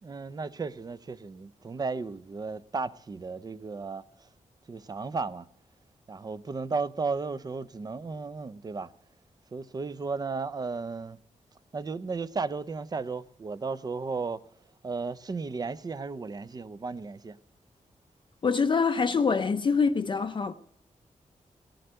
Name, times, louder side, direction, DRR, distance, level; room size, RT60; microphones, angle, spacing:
voice 1, 0.0-4.3 4.7-5.5 6.1-8.9 9.5-11.2 11.7-14.4 14.8-17.4, right 4 dB, 30° right, 0.5 m, -34 dB
voice 2, 18.4-20.5, left 5 dB, 35° left, 0.5 m, -25 dB
19.0 x 7.8 x 7.8 m
wide cardioid pair, 145°, 13 cm